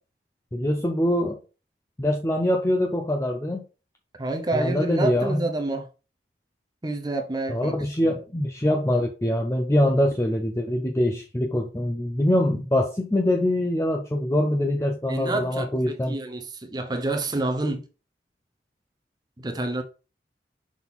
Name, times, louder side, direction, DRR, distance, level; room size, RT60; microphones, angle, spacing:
voice 1, 0.5-1.4 2.0-3.6 4.5-5.4 7.5-16.1, left 1 dB, 15° left, 0.6 m, -24 dB
voice 2, 4.2-5.9 6.8-7.7 8.0-8.2 15.1-17.9 19.4-19.8, right 2 dB, 25° right, 0.7 m, -28 dB
6.1 x 3.8 x 4.1 m
head